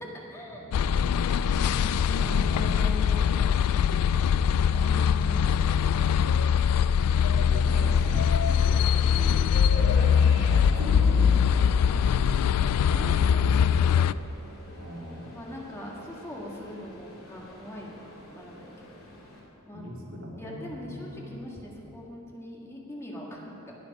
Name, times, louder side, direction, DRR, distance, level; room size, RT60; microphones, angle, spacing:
voice 1, 0.3-0.7 1.8-3.2 4.6-6.2 7.6-8.2 8.6-8.9 9.8-10.0 12.9-14.1 15.3-18.9 19.6-19.8 20.4-23.8, left 1 dB, 15° left, -3 dB, 1.8 m, -42 dB
sound 1, 0.7-14.1, left 7 dB, 90° left, 0.3 m, -22 dB
voice 2, 2.1-2.5 3.9-4.3 7.2-8.2 8.9-9.5 10.0-11.4 14.8-15.3 19.7-21.4, equal, 65° right, -3 dB, 2.4 m, -39 dB
Subway metro underground, 4.8-19.4, left 1 dB, 70° left, 2.8 m, -45 dB
21.0 x 7.3 x 5.4 m, 3.0 s
head